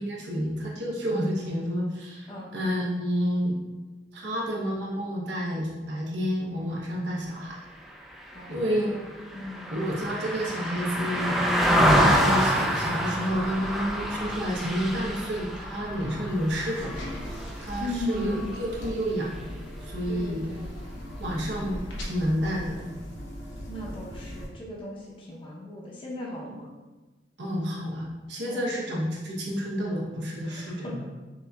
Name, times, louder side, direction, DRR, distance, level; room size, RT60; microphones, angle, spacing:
voice 1, 0.0-2.3 2.5-3.6 4.1-7.6 8.5-8.9 9.7-11.4 12.0-16.9 17.6-19.4 19.8-20.4 21.2-22.9 27.4-28.0 28.3-31.0, equal, 70° right, -3 dB, 0.9 m, -30 dB
Car passing by, 8.2-17.8 18.2-18.4, equal, ahead, 0.3 m, -26 dB
voice 2, 8.3-9.7 17.8-18.6 20.1-20.7 23.7-26.7 28.5-28.7 30.4-31.1, left 1 dB, 30° left, -4 dB, 0.7 m, -37 dB
sound 1, 13.3-22.8, equal, 30° right, 1.1 m, -42 dB
sound 2, 16.3-24.5, equal, 85° left, 0.9 m, -41 dB
5.9 x 2.7 x 2.3 m, 1.2 s
head